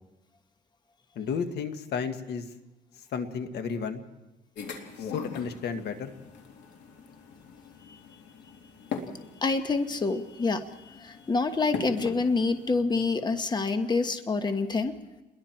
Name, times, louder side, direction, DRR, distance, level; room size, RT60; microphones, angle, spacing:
voice 1, 1.1-2.4 3.1-4.0 5.0-6.1, left 6 dB, 70° left, 7 dB, 1.7 m, -32 dB
sound 1, 4.6-12.8, left 5 dB, 90° left, 2.9 m, -41 dB
voice 2, 9.4-14.9, left 3 dB, 25° left, 8 dB, 1.2 m, -27 dB
29.0 x 21.5 x 4.6 m, 1.0 s
cardioid pair, 115°, 18 cm